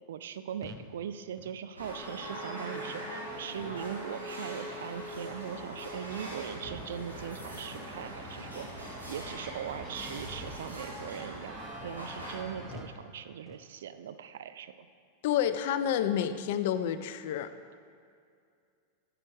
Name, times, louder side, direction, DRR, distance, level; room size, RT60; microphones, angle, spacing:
voice 1, 0.1-8.7 9.1-11.6 11.8-14.9, right 8 dB, 60° right, 11 dB, 0.4 m, -40 dB
sound 1, 0.6-1.0 1.3-1.6 2.1-2.4 2.9-3.1 3.6-4.0 4.4-4.6 5.1-5.4 5.9-6.1 6.6-7.1 7.4-7.7 8.2-8.3 8.9-9.1 9.7-10.0 10.4-10.7 11.2-11.4 11.9-12.1 12.7-13.0 13.5-13.7, left 2 dB, 10° left, 0.7 m, -52 dB
sound 2, 1.8-12.4, equal, 80° right, 2.1 m, -42 dB
sound 3, 4.8-12.9, right 1 dB, 15° right, 1.3 m, -47 dB
voice 2, 15.2-17.5, left 9 dB, 50° left, 12 dB, 0.4 m, -29 dB
9.6 x 4.9 x 6.4 m, 2.3 s
figure-of-eight pair, 90°, 0 cm